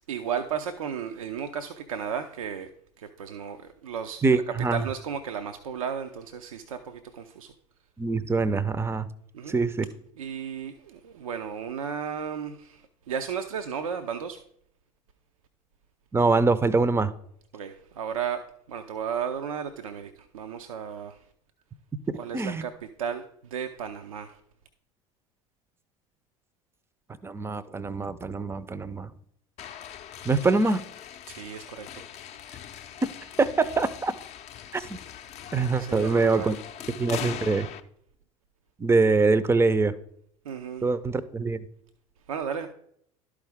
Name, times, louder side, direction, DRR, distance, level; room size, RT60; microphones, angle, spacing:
voice 1, 0.1-2.7 3.0-7.5 9.3-9.6 10.2-14.4 17.5-21.2 22.1-24.4 31.3-32.1 35.8-36.6 40.4-40.9 42.3-42.7, right 7 dB, 75° right, 0.5 m, -34 dB
voice 2, 4.2-4.8 8.0-9.1 9.5-9.9 16.1-17.1 22.1-22.7 27.2-29.1 30.2-30.8 33.0-33.1 33.4-34.1 34.7-35.0 35.5-36.6 37.0-37.7 38.8-39.9 40.8-41.7, right 3 dB, 15° right, 0.5 m, -24 dB
sound 1, 29.6-37.8, left 10 dB, 40° left, 0.6 m, -41 dB
11.5 x 4.8 x 3.5 m
figure-of-eight pair, 70°, 18 cm